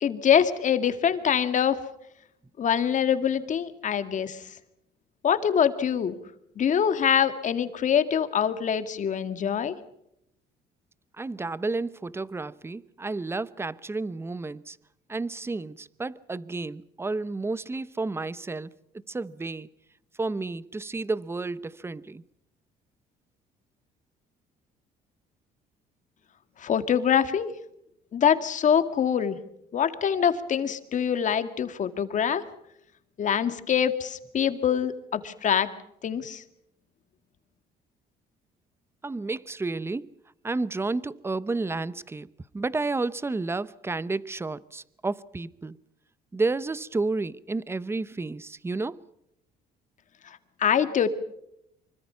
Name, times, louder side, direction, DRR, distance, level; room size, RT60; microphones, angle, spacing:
voice 1, 0.0-1.8 2.6-4.4 5.2-6.2 6.6-9.8 26.6-27.5 28.1-29.4 29.7-32.4 33.2-35.7 36.0-36.4 50.2-51.1, left 8 dB, 45° left, 2.1 m, -24 dB
voice 2, 11.2-14.8 15.1-18.7 19.1-19.7 20.2-22.2 39.0-40.1 40.4-42.3 42.5-45.8 46.3-49.0, right 3 dB, 15° right, 0.8 m, -31 dB
25.5 x 24.0 x 5.8 m
cardioid pair, 110°, 17 cm